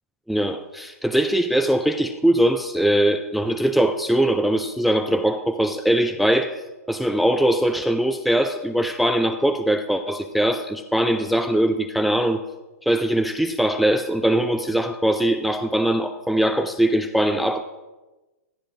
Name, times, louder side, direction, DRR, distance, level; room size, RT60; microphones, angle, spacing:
voice 1, 0.3-12.4 12.8-17.6, right 1 dB, ahead, 8 dB, 0.4 m, -21 dB
15.0 x 10.5 x 2.6 m, 1.1 s
hypercardioid pair, 120°, 8 cm